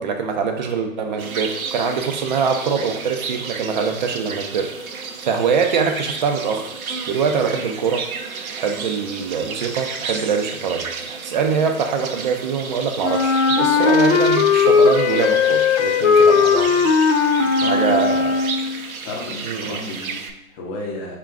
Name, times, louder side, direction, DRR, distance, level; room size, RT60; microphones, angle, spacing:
voice 1, 0.0-6.7 7.1-8.0 8.6-16.9 17.7-18.4 19.4-19.8, right 6 dB, 35° right, 5 dB, 0.4 m, -23 dB
sound 1, 1.2-20.3, right 5 dB, 90° right, 0.6 m, -32 dB
Wind instrument woodwind instrument, 13.0-18.8, left 5 dB, 65° left, 0.6 m, -17 dB
voice 2, 17.3-18.2 19.0-21.2, left 2 dB, 25° left, -1 dB, 0.8 m, -33 dB
4.4 x 2.5 x 3.4 m, 0.87 s
figure-of-eight pair, 125°, 42 cm